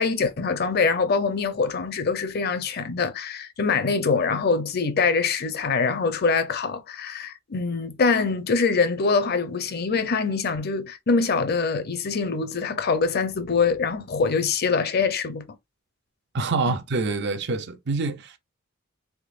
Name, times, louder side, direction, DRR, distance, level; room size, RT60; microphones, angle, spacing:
voice 1, 0.0-15.4 16.7-16.8, left 4 dB, 50° left, 0.6 m, -24 dB
voice 2, 16.3-18.4, right 3 dB, 55° right, 0.6 m, -26 dB
3.6 x 3.3 x 2.4 m
head